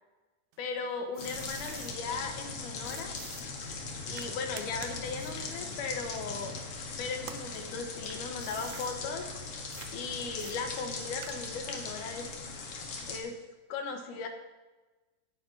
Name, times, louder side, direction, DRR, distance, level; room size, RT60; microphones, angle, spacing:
sound 1, 0.5-2.0 2.8-6.8 7.2-9.0 9.7-9.9 10.4-11.7, right 11 dB, 85° right, 1.7 m, -49 dB
voice 1, 0.6-3.1 4.0-6.6 7.0-9.2 9.9-12.3 13.1-13.4 13.7-14.3, left 4 dB, 75° left, 4 dB, 2.5 m, -37 dB
sound 2, 1.2-13.2, left 4 dB, 60° left, 1.8 m, -40 dB
16.0 x 9.5 x 2.7 m, 1.2 s
omnidirectional pair, 3.9 m